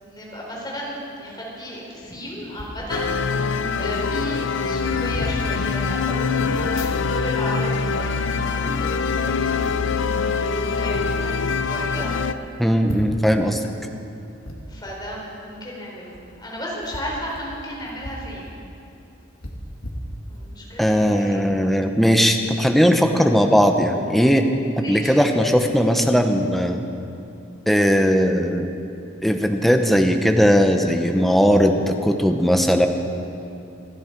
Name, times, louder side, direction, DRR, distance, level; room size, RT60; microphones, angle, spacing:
voice 1, 0.0-9.7 10.7-12.1 14.7-18.6 20.3-21.5 24.8-25.1, equal, 20° left, -4 dB, 3.9 m, -34 dB
sound 1, 2.5-2.8 3.7-3.8 4.0-4.3 4.8-5.4 6.4-7.4 7.7-9.1 9.6-9.9 10.7-11.1 11.6-11.7 12.0-12.1 12.8-13.3 14.4-14.6 16.0-16.2 16.8-18.3 18.6-18.7 19.4-20.6 21.1-21.3, equal, 90° left, 2.0 m, -37 dB
sound 2, 2.9-12.3, left 5 dB, 65° left, 0.6 m, -24 dB
voice 2, 12.6-13.7 20.8-24.4 24.8-26.8 27.7-28.7 29.2-32.9, equal, ahead, 5 dB, 0.8 m, -18 dB
27.5 x 10.5 x 4.5 m, 2.8 s
head